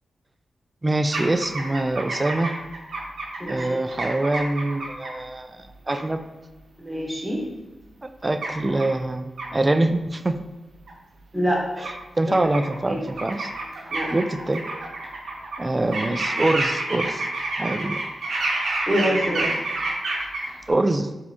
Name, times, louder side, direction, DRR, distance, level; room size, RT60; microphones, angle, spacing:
voice 1, 0.8-2.5 3.5-6.3 8.2-10.4 11.8-13.5 14.1-14.6 15.6-17.3 17.6-18.0 20.7-21.1, right 2 dB, 25° right, 9 dB, 0.3 m, -24 dB
sound 1, 1.1-5.1 5.9-6.0 8.4-8.9 9.4-9.5 10.9-11.0 11.8-11.9 12.3-12.8 13.1-15.6 15.9-20.7, right 2 dB, 80° right, 0.8 m, -29 dB
voice 2, 6.8-7.4 11.3-11.6 12.3-12.4 12.9-13.0 13.9-14.1 18.9-19.5, equal, ahead, -3 dB, 1.3 m, -25 dB
4.0 x 3.6 x 2.9 m, 1.1 s
cardioid pair, 70°, 0 cm